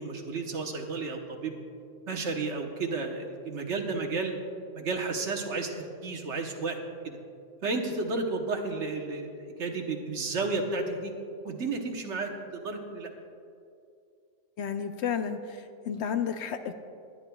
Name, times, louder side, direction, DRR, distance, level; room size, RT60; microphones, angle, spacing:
voice 1, 0.0-1.6 2.1-4.4 4.7-6.8 7.0-7.2 7.6-11.1 11.4-13.1, right 3 dB, 70° right, 3 dB, 1.4 m, -32 dB
voice 2, 14.6-16.7, left 7 dB, 70° left, 8 dB, 0.9 m, -32 dB
20.5 x 10.5 x 2.3 m, 2.4 s
omnidirectional pair, 1.3 m